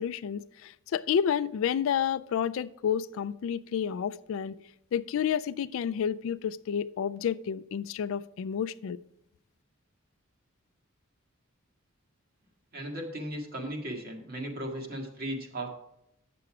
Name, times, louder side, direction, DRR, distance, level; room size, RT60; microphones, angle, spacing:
voice 1, 0.0-4.6 4.9-9.0, left 8 dB, 70° left, 0.3 m, -30 dB
voice 2, 12.7-15.7, right 1 dB, 45° right, 1.6 m, -36 dB
8.6 x 6.8 x 4.8 m
head